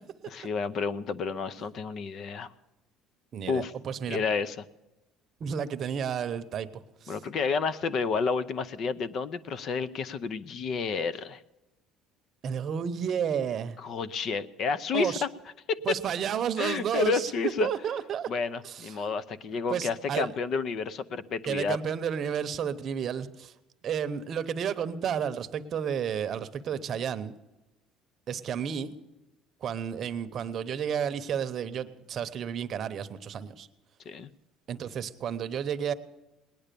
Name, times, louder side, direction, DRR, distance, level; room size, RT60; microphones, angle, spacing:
voice 1, 0.3-2.5 3.5-3.7 4.1-4.6 7.1-11.4 13.8-15.1 15.7-15.8 16.6-17.7 18.3-21.8 34.1-34.3, left 5 dB, 45° left, 16 dB, 0.7 m, -30 dB
voice 2, 3.3-4.2 5.4-7.2 12.4-13.8 14.9-15.2 15.9-18.3 18.6-19.1 19.7-20.3 21.5-23.5 23.8-27.4 28.3-28.9 29.6-33.7 34.7-35.9, right 8 dB, 40° right, 11 dB, 0.8 m, -31 dB
19.0 x 10.0 x 6.8 m, 1.0 s
cardioid pair, 130°, 0 cm